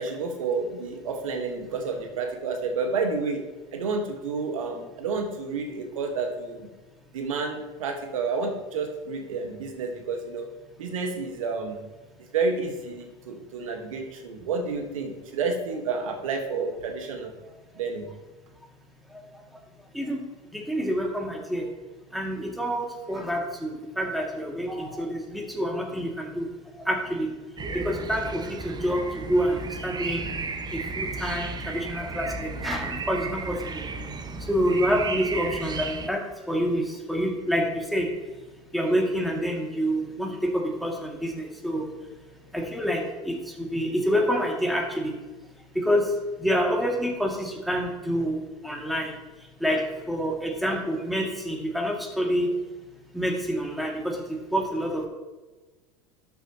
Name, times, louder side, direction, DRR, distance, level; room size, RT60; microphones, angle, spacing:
voice 1, 0.0-3.4 3.7-6.7 7.1-10.5 10.8-11.8 12.3-17.3 17.7-18.1, right 4 dB, 75° right, 4 dB, 1.6 m, -30 dB
voice 2, 20.5-21.7 22.1-26.5 26.9-27.3 27.7-29.0 29.3-30.3 30.7-33.6 34.5-36.2 36.5-38.1 38.7-41.9 42.5-45.1 45.8-46.0 46.4-48.4 48.6-49.1 49.6-52.5 53.1-54.2 54.5-55.1, equal, ahead, 0 dB, 2.3 m, -27 dB
sound 1, 27.6-36.1, right 3 dB, 25° right, 0.9 m, -34 dB
12.5 x 6.8 x 3.0 m, 1.2 s
hypercardioid pair, 80°, 17 cm